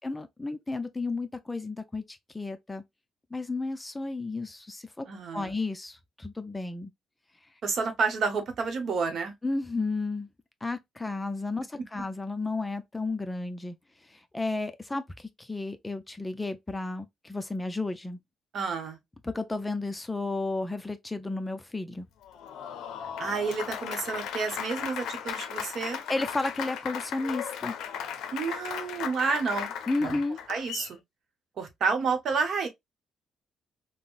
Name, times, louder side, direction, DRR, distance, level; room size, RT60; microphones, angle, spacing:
voice 1, 0.0-2.8 3.3-5.0 5.3-6.9 9.4-10.3 10.6-13.8 14.1-18.2 19.2-22.1 26.1-27.7 29.9-30.4, left 3 dB, 15° left, 0.4 m, -32 dB
voice 2, 5.1-5.5 7.6-9.3 18.5-19.0 23.2-26.0 28.3-29.7 30.0-30.2 30.5-31.0 31.6-32.7, right 5 dB, 60° right, 0.9 m, -30 dB
Applause, 22.2-30.9, left 8 dB, 85° left, 0.5 m, -36 dB
3.7 x 2.0 x 2.4 m
cardioid pair, 90°, 0 cm